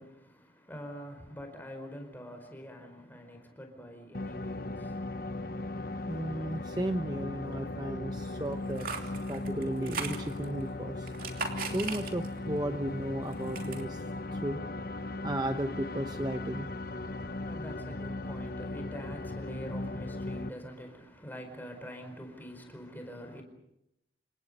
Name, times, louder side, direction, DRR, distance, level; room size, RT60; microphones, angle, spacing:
voice 1, 0.0-5.2 16.8-23.4, equal, 10° left, 4.7 m, -45 dB
sound 1, 4.1-20.5, left 2 dB, 55° left, 1.0 m, -38 dB
voice 2, 6.1-8.9 9.3-11.1 11.6-14.0 14.3-14.6 14.9-16.7, right 1 dB, 20° right, 0.9 m, -34 dB
sound 2, 8.5-10.6 11.0-12.5 12.9-13.8, right 5 dB, 50° right, 3.0 m, -39 dB
29.0 x 26.5 x 5.5 m
head